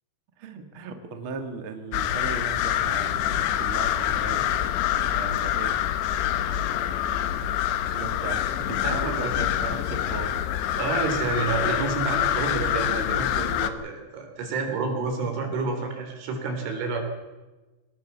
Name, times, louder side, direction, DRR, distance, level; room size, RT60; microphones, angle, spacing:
voice 1, 0.4-4.4 5.1-5.7 7.9-10.5, right 4 dB, 45° right, 6 dB, 1.8 m, -37 dB
sound 1, 1.9-13.7, left 11 dB, 75° left, 3.1 m, -26 dB
voice 2, 8.8-9.3 10.8-17.0, right 4 dB, 85° right, 4 dB, 6.1 m, -29 dB
23.0 x 19.0 x 7.2 m, 1.2 s
omnidirectional pair, 5.4 m